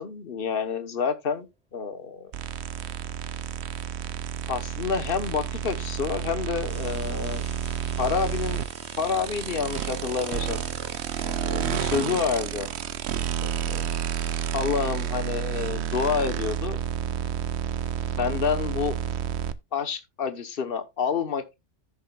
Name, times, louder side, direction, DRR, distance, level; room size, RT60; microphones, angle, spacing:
voice 1, 0.0-1.5 1.7-2.3 4.5-7.4 8.0-8.6 9.0-10.6 11.2-12.7 13.4-13.9 14.5-16.8 18.2-19.0 19.7-21.6, left 6 dB, 50° left, 1.3 m, -28 dB
sound 1, 2.2-3.1 4.9-5.0 6.5-12.0 13.2-13.4 13.8-14.6 14.8-15.2 16.1-18.7, equal, 5° right, 2.9 m, -52 dB
sound 2, 2.3-19.5, right 8 dB, 65° right, 0.9 m, -30 dB
14.5 x 6.2 x 2.4 m
omnidirectional pair, 1.3 m